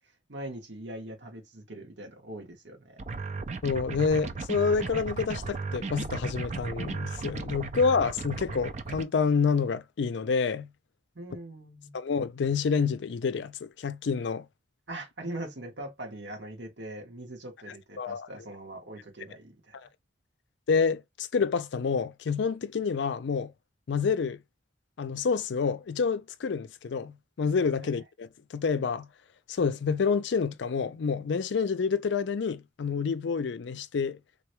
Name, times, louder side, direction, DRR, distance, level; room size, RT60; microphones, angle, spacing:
voice 1, 0.3-2.9 11.1-12.0 14.9-19.8, right 1 dB, 80° right, 1.6 m, -41 dB
sound 1, 3.0-9.0, right 4 dB, 40° right, 0.4 m, -35 dB
voice 2, 3.6-10.7 11.9-14.5 18.0-18.3 20.7-23.5 23.9-24.4 25.0-29.1 29.5-34.2, left 5 dB, 75° left, 0.4 m, -28 dB
3.6 x 2.2 x 3.0 m
head